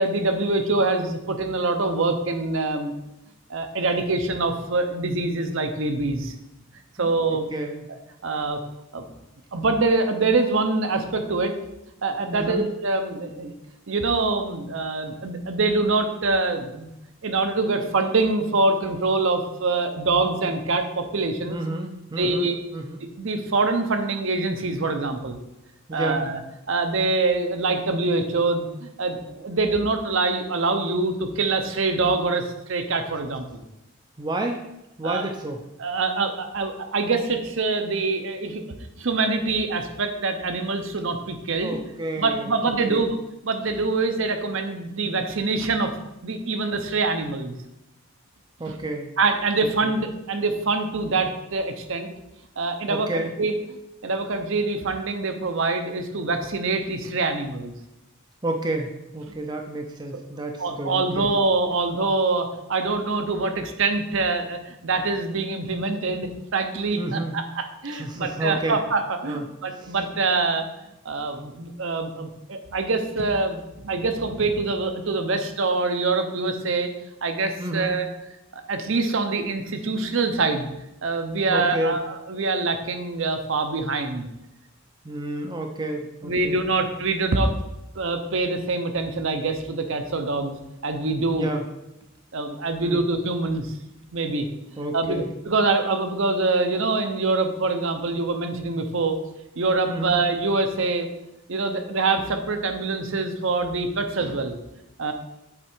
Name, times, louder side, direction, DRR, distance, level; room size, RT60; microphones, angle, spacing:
voice 1, 0.0-2.9 3.5-6.3 7.0-7.5 8.2-8.6 8.9-9.1 9.5-11.5 12.0-13.5 13.9-16.9 17.2-21.6 22.2-22.6 23.2-25.4 25.9-26.4 26.7-33.6 35.0-35.3 35.8-38.6 39.0-41.8 42.2-45.9 46.2-47.6 48.7-48.8 49.2-52.1 52.6-53.5 54.0-57.7 60.1-60.2 60.6-70.7 71.0-76.9 77.2-78.0 78.5-80.7 81.0-84.3 86.2-87.5 88.0-90.6 90.8-91.5 92.3-93.7 94.1-94.5 94.9-99.2 99.6-101.1 101.5-104.6 105.0-105.1, right 3 dB, 60° right, 7 dB, 0.7 m, -25 dB
voice 2, 7.0-7.8 12.3-12.7 21.5-23.0 25.9-26.3 34.2-34.6 35.0-35.6 41.6-43.1 48.6-49.1 52.9-53.3 58.4-61.3 67.0-67.4 67.9-68.8 69.3-69.4 69.8-69.9 77.6-78.0 81.5-82.0 85.0-86.6 91.3-91.6 92.8-93.0 94.8-95.3 99.9-100.2, right 1 dB, 20° right, 3 dB, 0.5 m, -30 dB
7.8 x 3.7 x 4.5 m, 0.92 s
head